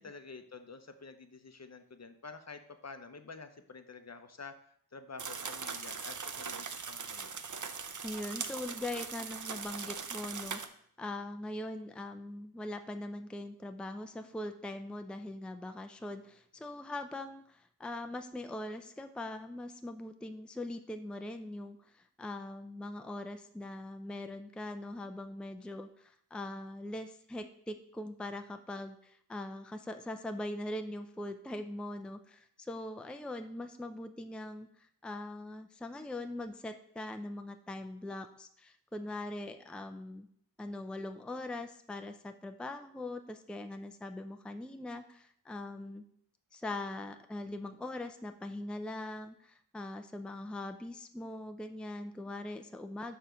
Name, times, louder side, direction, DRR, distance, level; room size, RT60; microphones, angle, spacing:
voice 1, 0.0-4.5 4.9-7.4, left 4 dB, 45° left, 8 dB, 0.7 m, -49 dB
sound 1, 5.2-10.7, right 5 dB, 55° right, 0.6 m, -40 dB
voice 2, 8.0-10.6 11.0-21.8 22.2-34.7 35.0-40.3 40.6-46.0 46.5-53.1, left 1 dB, 5° left, 7 dB, 0.5 m, -41 dB
5.6 x 4.7 x 5.1 m, 0.64 s
wide cardioid pair, 50°, 37 cm